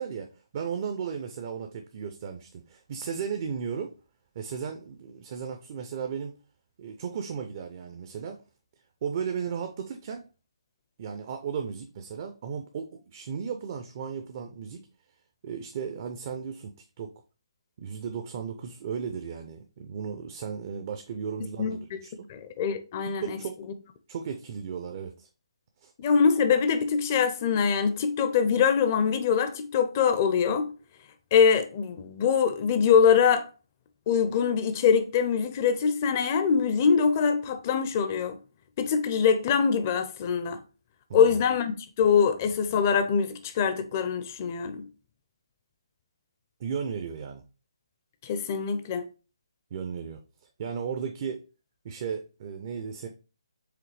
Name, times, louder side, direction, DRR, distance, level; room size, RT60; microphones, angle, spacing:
voice 1, 0.0-3.9 4.4-6.3 6.8-8.4 9.0-10.3 11.0-14.8 15.4-17.1 17.8-22.3 23.2-23.6 24.1-25.3 25.8-25.9 41.1-41.4 46.6-47.4 49.7-50.2 50.6-51.4 51.8-53.1, right 6 dB, 35° right, 0.4 m, -35 dB
voice 2, 22.3-23.4 26.0-30.7 31.3-33.5 34.1-38.4 38.8-40.6 41.1-44.9 48.2-49.0, left 6 dB, 30° left, 0.5 m, -23 dB
4.9 x 3.1 x 3.2 m
hypercardioid pair, 155°, 3 cm